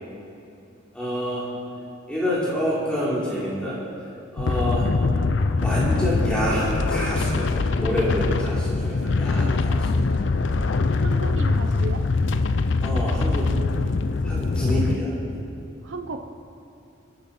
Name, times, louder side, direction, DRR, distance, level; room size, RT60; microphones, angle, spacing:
voice 1, 0.9-1.5 2.1-3.8 4.3-4.9 5.6-10.0 12.8-13.5 14.2-15.1, equal, 5° left, -8 dB, 3.2 m, -27 dB
sound 1, 4.4-15.0, left 3 dB, 65° left, 0.5 m, -23 dB
voice 2, 11.0-12.0 13.1-13.4 15.8-16.3, right 3 dB, 70° right, 6 dB, 0.7 m, -34 dB
24.5 x 8.7 x 4.3 m, 2.7 s
head